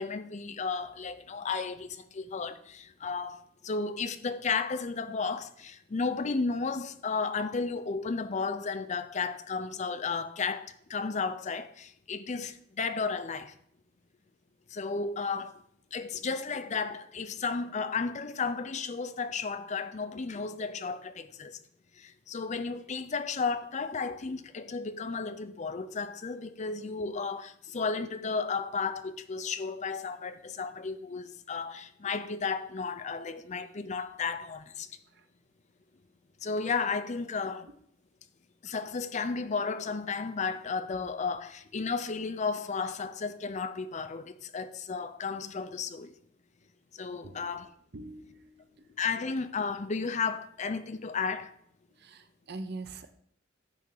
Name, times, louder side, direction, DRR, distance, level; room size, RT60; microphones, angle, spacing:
voice 1, 0.0-13.5 14.7-15.6 15.9-21.6 22.0-34.9 36.4-37.7 38.6-46.1 46.9-47.7 49.0-51.5, left 4 dB, 35° left, 0.5 m, -33 dB
voice 2, 47.9-49.0 52.0-53.1, right 2 dB, 55° right, 0.7 m, -44 dB
9.4 x 3.5 x 6.5 m
head